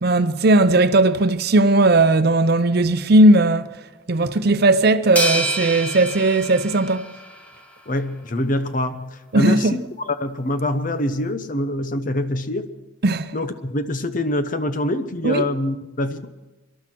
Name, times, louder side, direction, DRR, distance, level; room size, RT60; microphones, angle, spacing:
voice 1, 0.0-3.7 4.1-7.1 9.3-9.7 13.0-13.3 15.2-15.4, right 2 dB, 55° right, 0.7 m, -17 dB
sound 1, 5.2-7.6, right 1 dB, 10° left, 1.5 m, -27 dB
voice 2, 7.9-12.7 13.3-16.3, left 1 dB, 45° left, 0.9 m, -25 dB
24.5 x 12.0 x 4.5 m
head